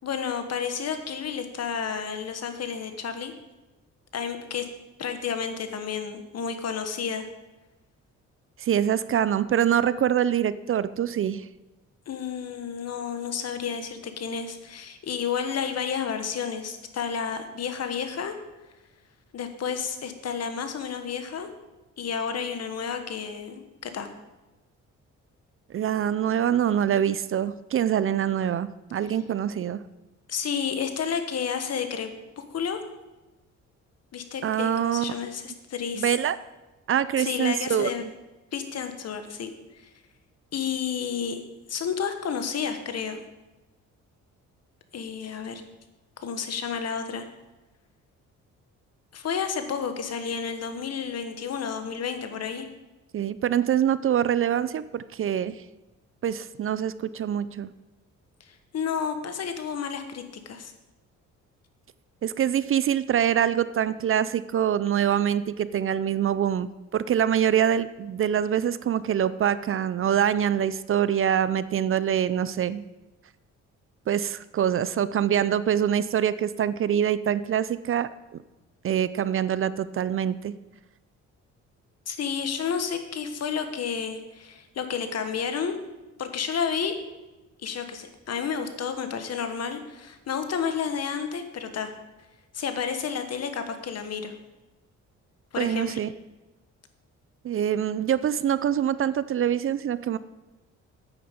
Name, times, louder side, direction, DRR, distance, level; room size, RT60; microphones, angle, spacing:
voice 1, 0.0-3.3 4.1-4.7 5.0-7.3 12.1-18.3 19.3-21.5 22.0-24.1 30.3-32.1 32.4-32.8 34.1-36.1 37.2-38.0 38.5-39.5 40.5-41.4 41.7-43.2 44.9-45.6 46.2-47.2 49.1-52.7 58.5-60.7 82.1-85.7 86.2-86.9 87.6-91.9 92.5-94.3 95.5-96.0, left 7 dB, 55° left, 8 dB, 1.4 m, -31 dB
voice 2, 8.6-11.5 25.7-29.8 34.4-35.1 36.0-36.4 36.9-38.1 53.1-55.6 56.2-57.7 62.2-72.8 74.1-78.4 78.8-80.5 95.6-96.1 97.4-100.2, right 9 dB, 45° right, 16 dB, 0.5 m, -25 dB
9.4 x 8.8 x 5.3 m, 1.1 s
cardioid pair, 90°, 30 cm